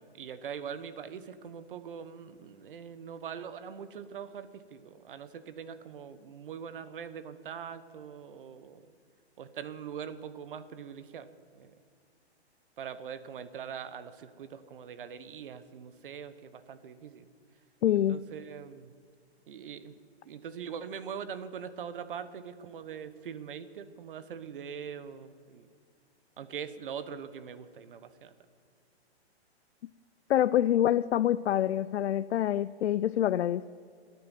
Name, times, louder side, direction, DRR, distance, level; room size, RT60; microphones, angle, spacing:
voice 1, 0.1-8.9 9.4-11.3 11.5-11.7 12.8-17.3 17.9-18.9 19.5-19.9 20.2-25.7 26.4-28.3, right 7 dB, 50° right, 13 dB, 1.1 m, -42 dB
voice 2, 17.8-18.2 30.3-33.7, left 11 dB, 75° left, 15 dB, 0.5 m, -26 dB
15.0 x 9.7 x 9.1 m, 2.1 s
hypercardioid pair, 170°, 33 cm